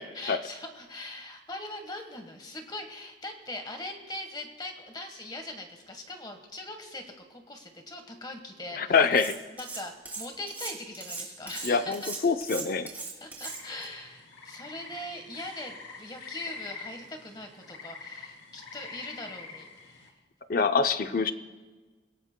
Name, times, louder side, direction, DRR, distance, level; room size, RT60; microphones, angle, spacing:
voice 1, 0.0-9.1 9.6-12.1 13.2-20.1 21.0-21.3, left 1 dB, 20° left, 5 dB, 1.3 m, -41 dB
voice 2, 8.8-9.4 11.6-12.9 20.5-21.3, left 5 dB, 50° left, 9 dB, 0.6 m, -25 dB
Cutlery silverware, 9.1-9.8 10.0-13.9, right 4 dB, 10° right, 3.0 m, -38 dB
sound 1, 13.4-20.1, left 4 dB, 85° left, 3.1 m, -45 dB
30.0 x 17.5 x 2.2 m, 1.3 s
head